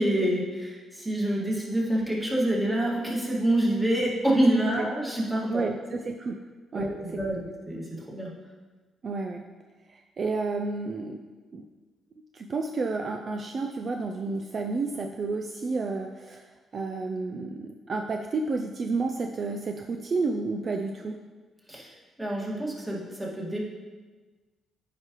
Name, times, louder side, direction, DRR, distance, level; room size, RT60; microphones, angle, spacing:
voice 1, 0.0-5.7 6.7-8.3 21.7-21.9 22.2-23.7, right 1 dB, 10° right, -4 dB, 1.9 m, -27 dB
voice 2, 5.5-6.4 6.7-7.2 9.0-9.5 9.9-11.2 11.5-11.7 12.3-21.2, right 3 dB, 45° right, 4 dB, 0.4 m, -31 dB
9.2 x 4.9 x 3.0 m, 1.3 s
cardioid pair, 90°, 0 cm